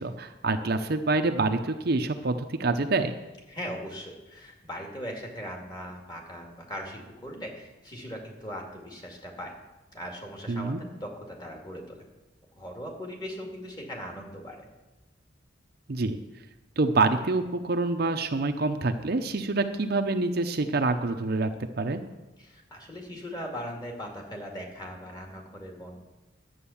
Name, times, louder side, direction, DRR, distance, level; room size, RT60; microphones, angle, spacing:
voice 1, 0.0-3.1 10.5-10.8 15.9-16.2 16.8-21.5 21.8-22.0, right 3 dB, 55° right, 7 dB, 0.7 m, -26 dB
voice 2, 3.5-9.5 9.9-12.0 12.6-14.7 22.4-26.0, equal, 20° left, 1 dB, 2.2 m, -39 dB
11.5 x 7.9 x 7.1 m, 1.1 s
head